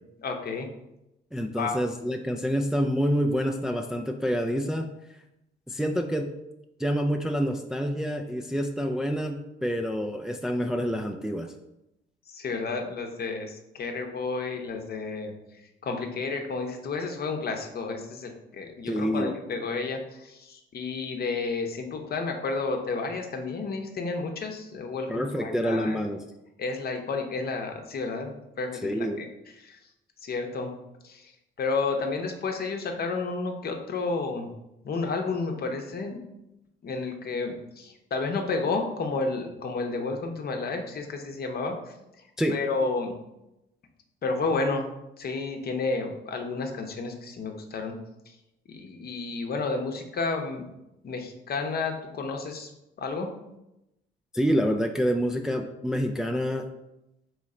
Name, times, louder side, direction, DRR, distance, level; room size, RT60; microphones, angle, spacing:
voice 1, 0.2-0.7 1.6-1.8 12.3-15.3 15.8-26.0 26.6-29.3 29.6-29.8 30.2-30.7 31.0-31.3 31.6-34.5 34.8-36.2 36.8-41.9 42.5-43.1 44.2-44.9 45.2-47.9 48.3-48.4 48.7-50.7 51.0-52.7 53.0-53.3, left 3 dB, 50° left, 4 dB, 0.8 m, -31 dB
voice 2, 1.3-4.9 5.7-6.3 6.8-11.5 18.8-19.4 25.1-26.2 28.8-29.2 42.4-42.6 54.3-56.6, equal, 5° right, 3 dB, 0.3 m, -27 dB
3.7 x 3.1 x 4.2 m, 0.89 s
cardioid pair, 90°, 20 cm